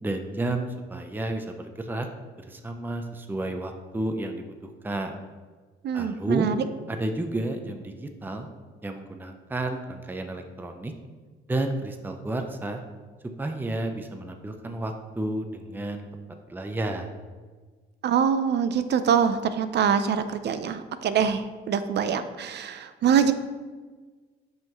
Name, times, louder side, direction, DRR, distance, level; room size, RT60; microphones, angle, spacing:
voice 1, 0.0-2.1 2.4-5.2 5.9-6.5 6.9-8.5 8.8-10.9 11.5-12.8 13.4-16.1 16.5-17.1, right 2 dB, 10° right, 5 dB, 0.6 m, -31 dB
voice 2, 5.8-6.6 18.0-23.3, right 7 dB, 60° right, 11 dB, 0.6 m, -24 dB
7.6 x 5.7 x 3.1 m, 1.4 s
cardioid pair, 90°, 20 cm